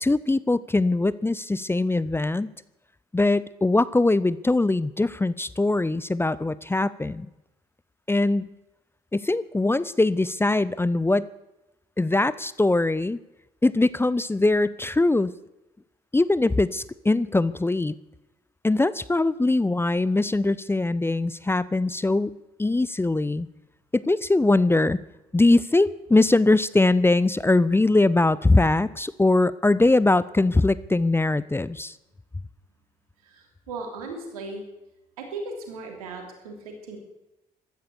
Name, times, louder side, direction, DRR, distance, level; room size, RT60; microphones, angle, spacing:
voice 1, 0.0-2.5 3.1-7.3 8.1-8.5 9.1-11.3 12.0-13.2 13.6-15.3 16.1-17.9 18.6-23.5 23.9-25.0 25.3-31.9, left 2 dB, 15° left, 18 dB, 0.6 m, -22 dB
voice 2, 33.2-34.6 35.2-37.0, right 3 dB, 80° right, 3 dB, 3.1 m, -37 dB
14.5 x 12.5 x 7.0 m, 0.98 s
hypercardioid pair, 45°, 18 cm